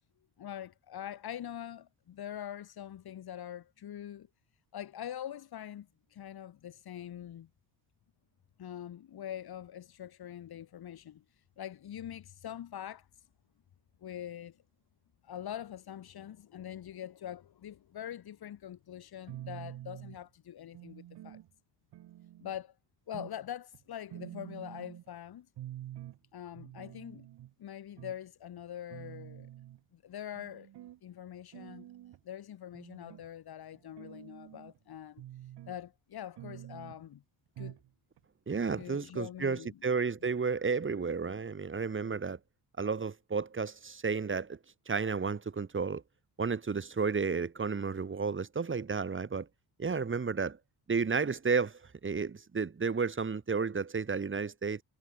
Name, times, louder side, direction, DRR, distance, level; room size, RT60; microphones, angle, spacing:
voice 1, 0.4-4.3 4.7-7.5 8.6-11.2 11.6-13.1 14.0-14.6 15.2-21.4 22.4-22.7 23.1-25.5 26.3-27.3 27.6-29.5 29.9-30.7 31.0-31.9 32.2-35.2 35.6-37.2 37.6-37.8 38.8-39.8, left 10 dB, 65° left, 6.4 m, -44 dB
sound 1, 19.3-20.2 20.7-21.5 21.9-22.6 23.1-23.4 23.7-23.8 24.1-25.1 25.6-26.2 26.5-27.5 28.0-28.2 28.6-28.7 28.9-29.8 30.3-31.0 31.5-32.2 32.7-33.3 33.7-34.8 35.2-35.8 36.4-37.0 37.6-37.9 38.2-38.3 38.5-38.6, right 13 dB, 85° right, 5.0 m, -47 dB
voice 2, 38.5-42.4 42.8-44.6 44.9-46.0 46.4-49.5 49.8-50.6 50.9-54.8, right 5 dB, 30° right, 3.8 m, -32 dB
cardioid pair, 120°, 40 cm